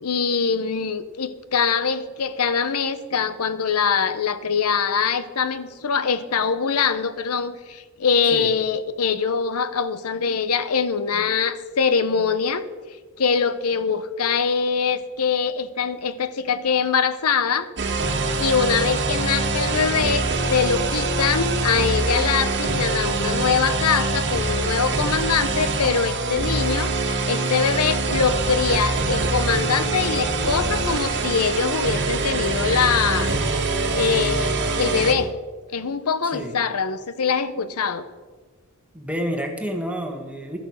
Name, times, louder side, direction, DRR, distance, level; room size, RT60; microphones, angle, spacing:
voice 1, 0.0-12.6 13.2-17.7 18.4-26.9 27.3-33.3 33.9-35.3 35.7-38.1, left 6 dB, 85° left, 13 dB, 0.8 m, -23 dB
sound 1, 17.8-35.1, right 3 dB, 55° right, 1.5 m, -24 dB
voice 2, 36.2-36.6 38.9-40.6, equal, 5° right, 3 dB, 1.5 m, -29 dB
12.5 x 7.8 x 6.4 m, 1.4 s
head